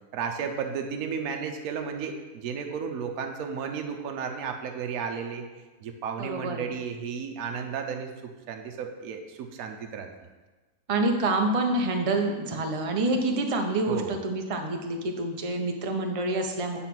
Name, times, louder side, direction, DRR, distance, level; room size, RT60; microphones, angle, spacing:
voice 1, 0.1-5.4 5.8-8.1 8.5-10.1 13.9-14.2, right 6 dB, 70° right, 4 dB, 1.1 m, -33 dB
voice 2, 6.2-6.6 10.9-16.8, right 2 dB, 35° right, 4 dB, 0.5 m, -27 dB
8.8 x 4.1 x 5.9 m, 1.2 s
omnidirectional pair, 1.7 m